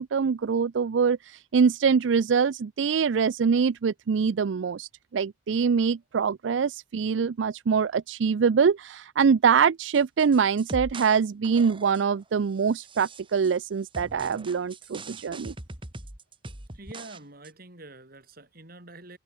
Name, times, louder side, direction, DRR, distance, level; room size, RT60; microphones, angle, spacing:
voice 1, 0.0-15.5, right 6 dB, 90° right, 0.4 m, -24 dB
sound 1, 9.9-11.2 11.4-12.1 12.7-13.6 13.9-17.2 17.4-17.5, right 2 dB, 30° right, 2.8 m, -41 dB
voice 2, 16.7-19.2, right 2 dB, 55° right, 6.4 m, -46 dB
head